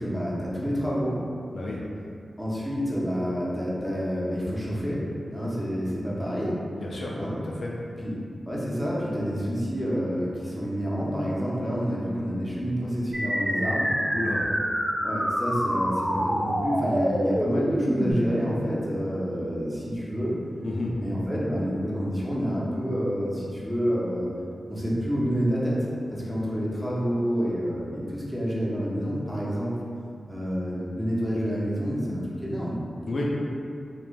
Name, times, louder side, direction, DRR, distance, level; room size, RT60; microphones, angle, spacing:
voice 1, 0.0-1.2 2.4-5.0 5.3-6.6 7.1-7.4 8.0-8.2 8.5-13.9 15.0-20.3 21.0-24.3 24.7-25.8 26.1-29.7 30.3-32.8, equal, ahead, -7 dB, 0.5 m, -28 dB
voice 2, 6.8-7.1 7.6-7.7 14.1-14.4 20.6-20.9 33.1-33.2, left 2 dB, 60° left, -4 dB, 0.3 m, -31 dB
sound 1, 13.1-18.1, equal, 80° right, 1.3 m, -26 dB
3.1 x 2.1 x 2.4 m, 2.4 s
wide cardioid pair, 120°, 0 cm